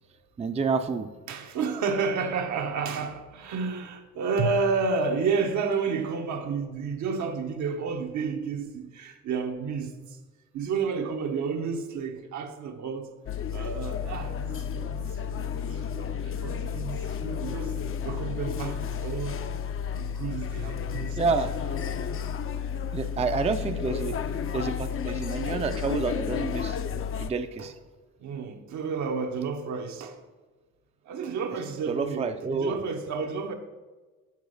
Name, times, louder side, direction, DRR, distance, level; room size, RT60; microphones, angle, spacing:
voice 1, 0.4-1.1 21.2-21.5 22.9-24.2 24.5-26.8 27.2-27.7 31.9-32.8, right 4 dB, 20° right, 0.5 m, -28 dB
voice 2, 1.3-10.2 10.5-13.1 13.5-19.4 20.0-21.2 22.0-22.1 25.3-25.4 27.6-27.7 28.2-30.2 31.0-33.5, right 5 dB, 70° right, 1.1 m, -31 dB
sound 1, 13.3-27.3, left 7 dB, 45° left, 0.6 m, -32 dB
7.2 x 4.8 x 6.4 m
cardioid pair, 90°, 30 cm